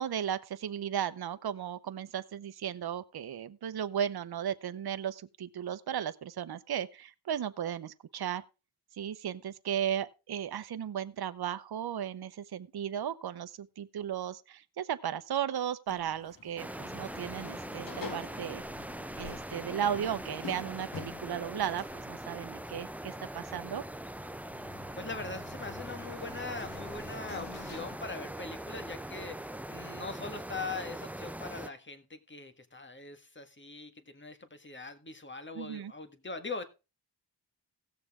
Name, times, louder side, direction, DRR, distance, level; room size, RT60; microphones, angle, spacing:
voice 1, 0.0-8.4 8.9-18.6 19.2-23.8 35.6-35.9, right 9 dB, 60° right, 0.8 m, -35 dB
sound 1, 15.9-28.0, left 5 dB, 50° left, 1.5 m, -48 dB
sound 2, 16.6-31.7, right 1 dB, 5° right, 0.6 m, -42 dB
voice 2, 24.9-36.6, left 3 dB, 25° left, 1.7 m, -41 dB
16.5 x 6.8 x 3.6 m
cardioid pair, 60°, 43 cm